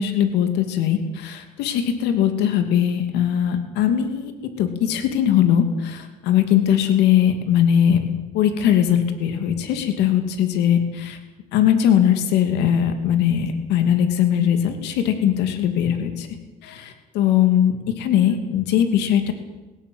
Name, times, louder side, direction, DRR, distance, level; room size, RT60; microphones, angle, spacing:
voice 1, 0.0-4.3 4.6-8.0 8.3-11.2 11.5-16.3 16.6-19.3, left 9 dB, 90° left, 8 dB, 2.7 m, -20 dB
19.5 x 17.0 x 9.5 m, 1.1 s
cardioid pair, 110°, 17 cm